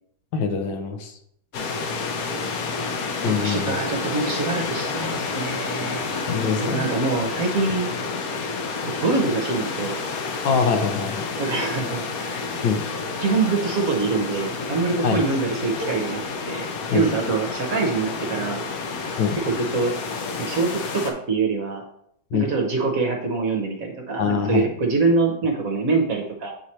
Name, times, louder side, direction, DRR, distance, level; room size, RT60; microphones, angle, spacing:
voice 1, 0.3-1.1 3.2-3.8 6.3-6.8 10.4-11.3 12.6-12.9 15.0-15.2 16.9-17.1 19.2-19.4 22.3-22.5 24.2-24.7, left 5 dB, 80° left, 5 dB, 1.5 m, -23 dB
sound 1, 1.5-21.1, left 4 dB, 60° left, 1.1 m, -29 dB
voice 2, 2.3-2.7 3.2-6.0 6.6-7.9 9.0-10.0 11.4-12.4 13.2-16.7 16.9-18.6 19.4-19.9 20.4-21.8 22.3-26.5, right 4 dB, 55° right, 2 dB, 1.2 m, -24 dB
8.0 x 3.1 x 4.2 m, 0.70 s
omnidirectional pair, 2.0 m